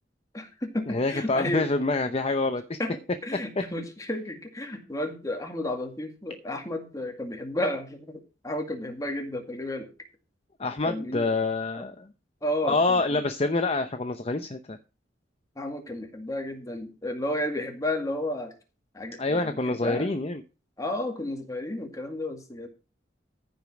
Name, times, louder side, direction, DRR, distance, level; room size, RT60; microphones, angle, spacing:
voice 1, 0.3-1.7 2.8-9.9 10.9-11.3 11.7-11.8 12.4-13.2 15.6-18.5 18.9-20.1 20.8-22.7, left 1 dB, 20° left, 4 dB, 2.0 m, -32 dB
voice 2, 0.9-2.8 10.6-12.1 12.6-14.8 19.2-20.4, left 3 dB, 35° left, 8 dB, 0.7 m, -26 dB
14.0 x 5.2 x 6.0 m, 0.32 s
head